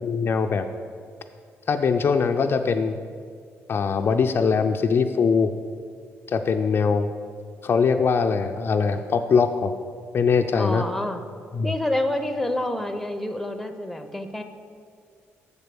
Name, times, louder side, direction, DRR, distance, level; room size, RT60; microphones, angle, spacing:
voice 1, 0.0-0.6 1.7-3.0 3.7-5.5 6.3-7.1 7.6-9.7 10.1-10.8 11.5-11.7, left 5 dB, 50° left, 6 dB, 0.4 m, -22 dB
voice 2, 10.5-11.2 11.6-14.4, left 1 dB, 5° left, 7 dB, 0.6 m, -28 dB
6.9 x 4.4 x 6.8 m, 2.1 s
cardioid pair, 85°, 5 cm